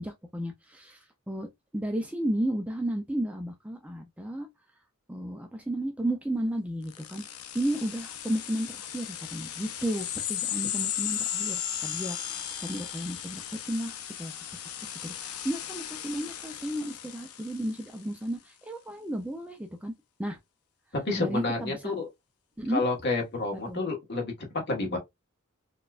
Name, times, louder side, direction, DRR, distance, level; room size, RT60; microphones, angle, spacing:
voice 1, 0.0-1.5 1.7-4.5 5.1-7.2 7.5-14.3 14.6-14.7 15.0-19.9 20.2-20.4 21.1-21.9 22.6-22.8 23.7-23.8, right 1 dB, 5° right, 0.4 m, -33 dB
sound 1, 6.9-18.0, left 10 dB, 90° left, 0.6 m, -36 dB
voice 2, 20.9-22.1 22.7-25.0, left 3 dB, 50° left, 1.3 m, -29 dB
4.1 x 2.2 x 2.4 m
head